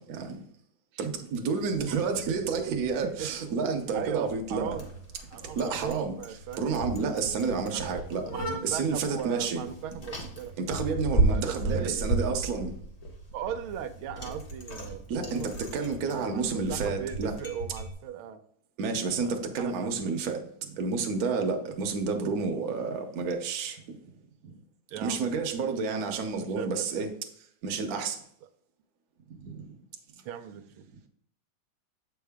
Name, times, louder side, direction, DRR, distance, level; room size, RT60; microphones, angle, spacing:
voice 1, 1.0-4.7 5.6-6.1 6.6-8.2 8.6-9.6 10.6-12.7 15.1-17.3 18.8-20.4 20.8-23.8 25.0-27.1 27.6-28.2 29.4-29.5, right 5 dB, 55° right, 1.2 m, -30 dB
Bicycle, 1.6-17.9, right 2 dB, 35° left, 0.6 m, -34 dB
voice 2, 3.0-3.3 3.9-4.9 5.3-6.8 7.7-8.1 8.3-10.5 11.3-12.1 13.3-15.5 16.0-18.4 19.2-19.9 24.9-25.7 26.4-27.1 30.2-30.9, right 9 dB, 90° right, 1.5 m, -38 dB
7.7 x 4.8 x 3.5 m
omnidirectional pair, 2.2 m